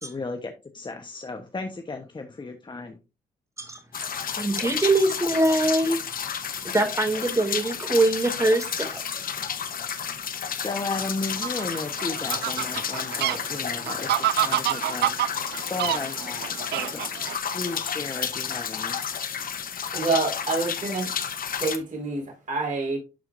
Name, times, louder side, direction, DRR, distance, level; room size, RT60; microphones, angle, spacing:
voice 1, 0.0-3.0 10.5-15.2 15.7-17.0 17.5-19.0, left 3 dB, 25° left, 1.0 m, -34 dB
sound 1, 3.9-21.8, left 7 dB, 55° left, 1.0 m, -31 dB
voice 2, 4.4-6.0 6.6-9.0, right 2 dB, 15° right, 2.4 m, -23 dB
Fowl, 11.2-17.4, right 13 dB, 75° right, 0.4 m, -28 dB
voice 3, 19.9-21.2 21.6-23.0, right 3 dB, 50° right, 4.8 m, -27 dB
11.5 x 4.4 x 2.6 m
supercardioid pair, 65°, 17 cm